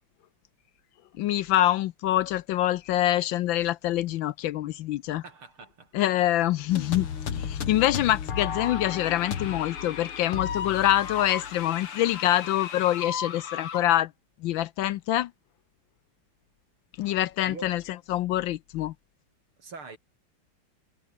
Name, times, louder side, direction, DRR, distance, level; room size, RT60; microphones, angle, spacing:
voice 1, 1.2-5.2 5.9-7.1 7.3-14.1 14.4-15.3 17.0-17.8 18.1-18.9, left 13 dB, 70° left, 1.3 m, -25 dB
voice 2, 5.2-6.0 17.5-17.7 19.6-20.0, right 4 dB, 75° right, 5.2 m, -43 dB
sound 1, 6.7-13.8, left 7 dB, 90° left, 2.9 m, -34 dB
omnidirectional pair, 2.4 m